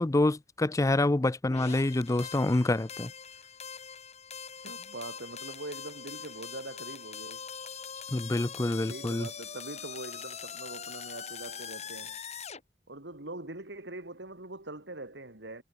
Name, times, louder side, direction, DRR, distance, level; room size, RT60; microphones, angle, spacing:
voice 1, 0.0-3.1 8.1-9.3, left 2 dB, 20° left, 0.5 m, -27 dB
sound 1, 1.5-12.6, left 7 dB, 40° left, 2.8 m, -43 dB
voice 2, 4.6-7.5 8.9-12.2 12.9-15.6, right 2 dB, 80° right, 3.1 m, -43 dB
head